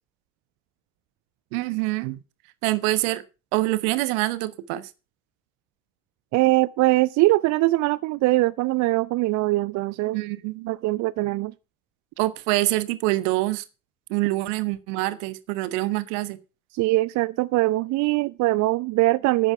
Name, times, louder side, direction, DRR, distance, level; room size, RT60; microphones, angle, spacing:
voice 1, 1.5-2.2 2.6-3.2 3.5-4.9 10.1-10.7 12.2-13.6 14.1-16.4, right 19 dB, 65° right, 1.3 m, -25 dB
voice 2, 6.3-10.2 10.7-11.5 16.7-19.5, right 19 dB, 45° right, 0.5 m, -22 dB
9.8 x 9.7 x 5.8 m
figure-of-eight pair, 60°, 40 cm